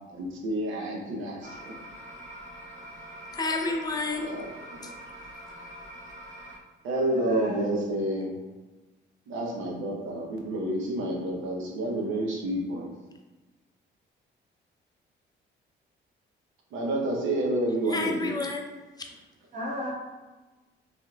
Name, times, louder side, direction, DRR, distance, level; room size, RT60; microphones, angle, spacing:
voice 1, 0.1-1.7 4.2-4.9 6.8-8.3 9.3-12.9 16.7-18.4, right 1 dB, 80° right, -1 dB, 0.8 m, -29 dB
sound 1, 1.4-6.6, equal, 65° right, 1.2 m, -44 dB
voice 2, 3.3-4.3 4.8-4.9 17.9-19.1, left 3 dB, 20° left, 3 dB, 0.5 m, -30 dB
voice 3, 7.1-7.7 19.5-19.9, left 1 dB, 45° right, -5 dB, 1.4 m, -33 dB
3.6 x 3.0 x 2.3 m, 1.2 s
cardioid pair, 90°, 20 cm